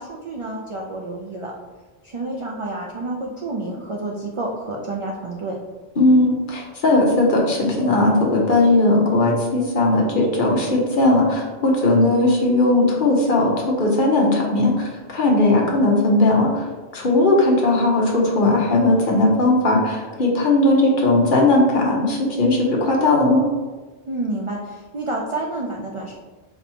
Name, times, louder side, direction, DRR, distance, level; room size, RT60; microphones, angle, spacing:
voice 1, 0.0-1.5 2.0-5.6 24.1-26.1, right 2 dB, 55° right, -2 dB, 0.3 m, -29 dB
voice 2, 6.0-16.6 16.9-23.4, left 2 dB, 55° left, -1 dB, 0.9 m, -18 dB
5.1 x 2.7 x 2.8 m, 1.3 s
omnidirectional pair, 1.1 m